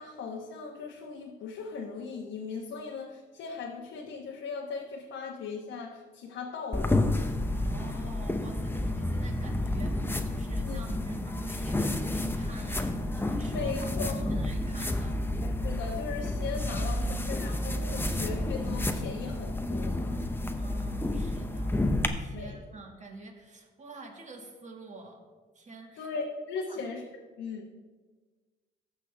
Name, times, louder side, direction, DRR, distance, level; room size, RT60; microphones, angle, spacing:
voice 1, 0.0-7.1 10.6-11.0 13.5-14.1 15.4-20.2 22.3-22.6 26.0-27.0 27.4-27.9, left 4 dB, 75° left, -1 dB, 1.1 m, -38 dB
sound 1, 6.7-22.1, left 1 dB, 10° left, 0.7 m, -30 dB
voice 2, 7.5-15.2 20.6-21.8 22.2-25.2 25.5-26.1 26.6-26.8 27.3-27.4, right 2 dB, 35° right, 2 dB, 1.8 m, -47 dB
14.5 x 6.1 x 3.4 m, 1.4 s
cardioid pair, 90°, 20 cm